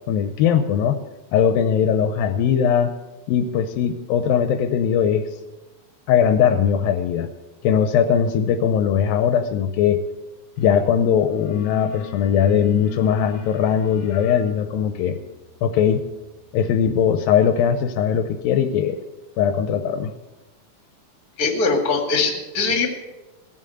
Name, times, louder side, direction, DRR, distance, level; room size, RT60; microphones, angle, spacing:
voice 1, 0.1-1.0 1.3-2.9 3.3-5.3 6.1-7.3 7.6-10.0 10.6-15.2 15.6-16.0 16.5-19.0 19.4-20.1, left 8 dB, 80° left, 8 dB, 2.4 m, -20 dB
sound 1, 10.6-10.9 11.1-17.8, left 9 dB, 60° left, 2.1 m, -41 dB
voice 2, 21.4-22.9, left 4 dB, 30° left, 3 dB, 2.1 m, -21 dB
16.5 x 7.5 x 7.8 m, 1.1 s
omnidirectional pair, 4.2 m